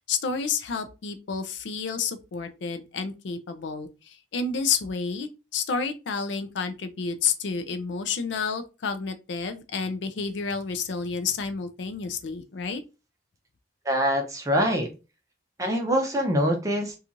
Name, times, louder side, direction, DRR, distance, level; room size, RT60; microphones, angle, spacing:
voice 1, 0.1-12.8, left 5 dB, 70° left, 0.4 m, -30 dB
voice 2, 13.9-14.9 15.6-16.9, equal, 15° right, 0.5 m, -24 dB
2.9 x 2.3 x 2.5 m
head